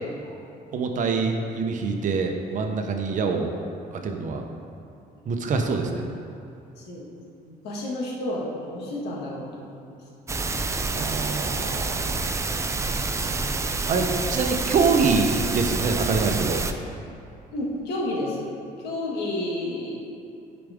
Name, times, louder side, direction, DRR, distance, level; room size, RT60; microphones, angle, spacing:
voice 1, 0.7-3.5 3.9-4.4 5.3-6.1 10.9-12.2 13.9-16.6, right 4 dB, 50° right, 4 dB, 0.9 m, -25 dB
voice 2, 6.8-7.1 7.4-10.0 17.5-18.5 18.8-20.0, left 1 dB, 80° left, -3 dB, 1.7 m, -31 dB
sound 1, 10.3-16.7, right 3 dB, 15° right, 0.4 m, -27 dB
10.5 x 5.1 x 3.6 m, 2.6 s
cardioid pair, 110°, 17 cm